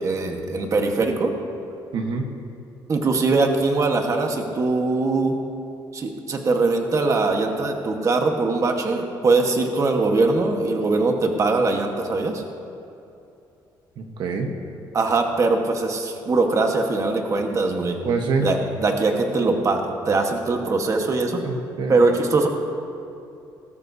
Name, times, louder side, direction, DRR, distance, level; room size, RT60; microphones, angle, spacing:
voice 1, 0.0-1.3 2.9-5.4 5.9-12.4 14.9-18.0 18.4-21.4 21.9-22.5, right 3 dB, 40° right, 3 dB, 1.4 m, -21 dB
voice 2, 1.9-2.3 14.0-14.5 18.0-18.5 21.4-22.1, right 4 dB, 70° right, 3 dB, 1.2 m, -26 dB
19.0 x 13.0 x 2.8 m, 2.7 s
cardioid pair, 100°, 8 cm